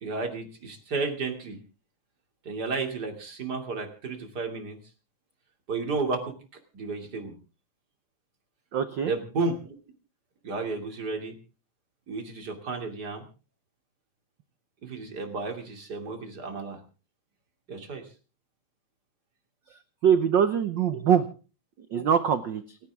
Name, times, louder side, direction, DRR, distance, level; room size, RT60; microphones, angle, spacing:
voice 1, 0.0-1.6 2.4-4.8 5.7-6.4 6.7-7.3 9.0-9.8 10.4-11.4 12.1-13.2 14.8-16.8 17.7-18.1 20.9-21.0 22.0-22.1, right 3 dB, 35° right, 4 dB, 3.1 m, -32 dB
voice 2, 8.7-9.1 19.7-21.3 21.9-22.8, right 8 dB, 85° right, 11 dB, 1.0 m, -23 dB
29.0 x 10.0 x 3.6 m, 0.35 s
omnidirectional pair, 3.3 m